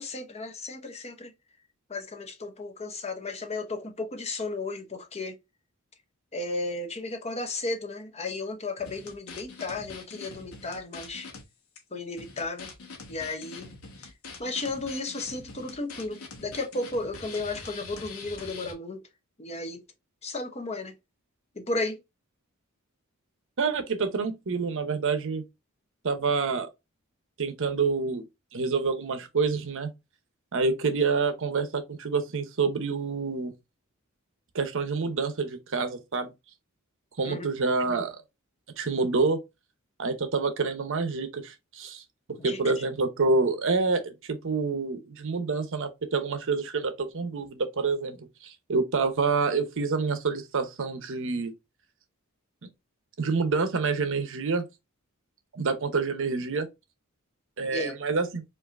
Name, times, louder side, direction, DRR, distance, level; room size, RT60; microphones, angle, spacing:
voice 1, 0.0-1.3 1.9-5.3 6.3-11.3 11.9-12.7 13.1-13.7 14.0-14.1 14.4-19.0 19.4-19.8 20.2-20.9 21.6-22.0 37.2-37.5 42.4-42.6 57.7-58.0, left 2 dB, 30° left, 0.7 m, -34 dB
sound 1, 8.8-11.4 11.8-11.9 12.2-18.7, left 4 dB, 75° left, 1.0 m, -44 dB
voice 2, 23.6-25.4 26.0-26.7 27.4-28.2 28.5-29.9 30.5-33.5 34.5-36.3 37.2-38.2 38.8-39.4 40.0-42.0 42.4-51.5 52.6-52.7 53.2-54.7 55.5-56.7 57.6-58.4, right 4 dB, 65° right, 0.7 m, -27 dB
4.7 x 2.6 x 2.5 m
head